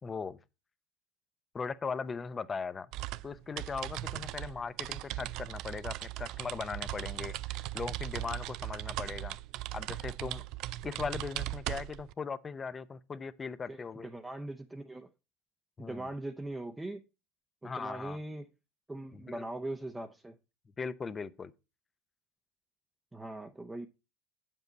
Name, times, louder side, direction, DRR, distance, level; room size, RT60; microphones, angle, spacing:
voice 1, 0.0-0.4 1.5-2.9 3.2-9.4 9.7-10.4 10.8-14.1 15.8-16.1 17.6-18.2 19.1-19.4 20.8-21.5, left 5 dB, 25° left, 0.6 m, -39 dB
sound 1, 2.9-12.1, right 16 dB, 60° right, 0.4 m, -38 dB
voice 2, 13.7-15.1 15.8-17.0 17.6-18.5 18.9-20.4 23.1-23.9, right 1 dB, 10° right, 0.7 m, -40 dB
7.9 x 7.5 x 4.0 m
supercardioid pair, 105°, 0 cm